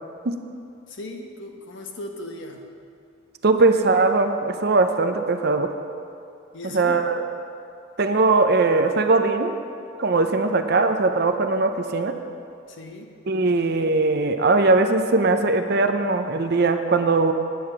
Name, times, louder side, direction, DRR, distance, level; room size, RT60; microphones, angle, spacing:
voice 1, 0.9-2.6 6.5-7.0 12.7-13.1, left 1 dB, 65° left, 3 dB, 1.1 m, -37 dB
voice 2, 3.4-5.7 6.7-7.2 8.0-9.6 10.0-12.1 13.3-17.3, right 3 dB, 50° right, 7 dB, 0.6 m, -20 dB
9.4 x 8.5 x 5.9 m, 2.5 s
head